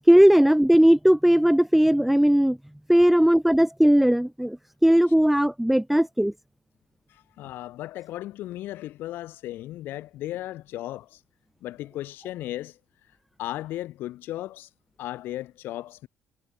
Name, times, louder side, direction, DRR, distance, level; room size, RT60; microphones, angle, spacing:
voice 1, 0.1-2.6 2.9-4.6 4.8-6.3, equal, 5° right, 0.6 m, -18 dB
voice 2, 7.1-11.2 11.6-12.8 13.4-14.7 15.0-16.1, left 15 dB, 70° left, 1.4 m, -36 dB
supercardioid pair, 65°, 4 cm